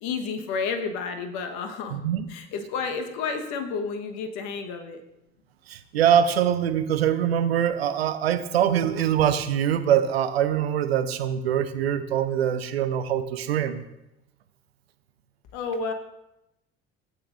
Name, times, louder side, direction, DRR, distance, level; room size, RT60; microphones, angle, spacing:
voice 1, 0.0-2.0 2.3-5.0 15.5-15.9, left 5 dB, 65° left, 6 dB, 1.3 m, -31 dB
voice 2, 1.9-2.2 5.7-13.8, right 9 dB, 85° right, 11 dB, 0.7 m, -23 dB
16.0 x 8.4 x 2.6 m, 0.90 s
hypercardioid pair, 60°, 30 cm